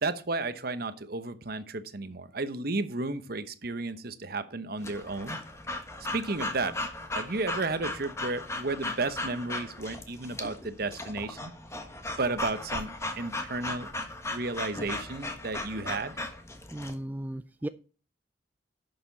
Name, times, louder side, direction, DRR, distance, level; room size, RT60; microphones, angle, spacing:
voice 1, 0.0-5.4 6.1-6.8 7.1-11.5 12.2-13.9 14.3-16.2, right 3 dB, 55° right, 11 dB, 1.0 m, -33 dB
Breathing / Dog, 4.8-16.9, left 2 dB, 15° left, 1.4 m, -37 dB
voice 2, 16.7-17.7, right 1 dB, 10° right, 11 dB, 0.4 m, -35 dB
11.5 x 7.0 x 4.0 m, 0.37 s
head